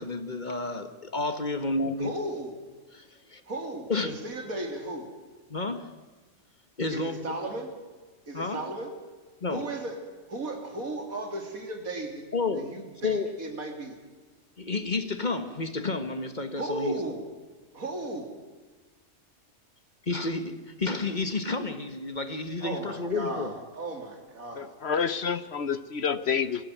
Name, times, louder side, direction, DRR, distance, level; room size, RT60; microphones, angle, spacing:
voice 1, 0.0-2.1 2.9-3.4 3.9-4.1 5.5-5.9 6.8-7.3 8.3-8.6 9.4-9.7 12.3-12.7 13.0-13.3 14.6-17.0 20.1-23.5, left 3 dB, 35° left, 9 dB, 1.5 m, -30 dB
voice 2, 2.0-2.6 3.5-5.1 6.9-7.7 8.3-8.9 9.5-10.0 10.3-12.3 12.5-14.0 16.6-17.3 17.7-18.3 22.6-24.7, right 1 dB, 85° right, 4 dB, 3.5 m, -35 dB
voice 3, 24.6-26.6, left 6 dB, 55° left, 14 dB, 1.0 m, -28 dB
23.0 x 16.0 x 9.3 m, 1.3 s
omnidirectional pair, 1.4 m